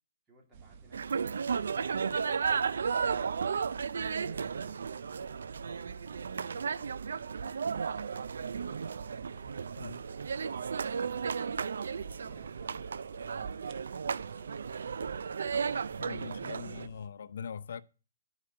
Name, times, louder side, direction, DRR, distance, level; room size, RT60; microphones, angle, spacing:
voice 1, 0.3-3.6, right 3 dB, 15° right, 2.3 m, -62 dB
sound 1, 0.5-17.1, right 5 dB, 35° right, 0.8 m, -50 dB
sound 2, 0.9-16.9, right 6 dB, 80° right, 0.4 m, -34 dB
voice 2, 16.0-17.8, left 7 dB, 70° left, 0.6 m, -41 dB
10.5 x 4.9 x 5.7 m
hypercardioid pair, 160°, 0 cm